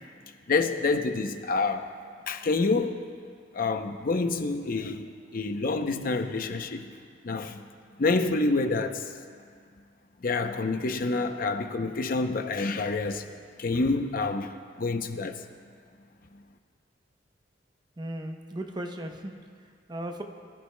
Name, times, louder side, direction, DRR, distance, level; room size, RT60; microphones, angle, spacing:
voice 1, 0.5-1.9 2.3-3.0 3.5-6.9 7.2-7.6 8.0-9.0 10.2-13.2 13.6-14.5 14.8-15.4, left 3 dB, 50° left, 7 dB, 0.6 m, -27 dB
voice 2, 18.0-20.2, right 1 dB, 25° right, 4 dB, 0.8 m, -37 dB
22.0 x 11.5 x 2.2 m, 2.1 s
head